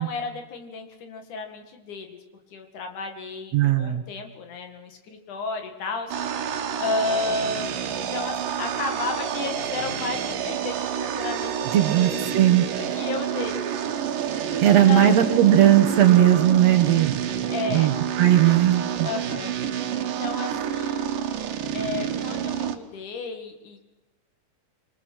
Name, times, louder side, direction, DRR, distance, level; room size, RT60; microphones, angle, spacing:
voice 1, 0.0-2.2 2.5-6.1 6.8-12.4 12.8-13.7 14.5-15.2 17.5-17.9 19.0-19.5 20.0-21.2 21.7-23.8, left 3 dB, 70° left, 5 dB, 3.4 m, -32 dB
voice 2, 3.5-4.0 11.7-12.7 14.6-17.2 17.7-19.1, right 12 dB, 65° right, 8 dB, 2.1 m, -18 dB
sound 1, 6.1-22.8, right 9 dB, 80° right, 2.9 m, -29 dB
26.0 x 24.0 x 6.3 m, 0.98 s
omnidirectional pair, 3.8 m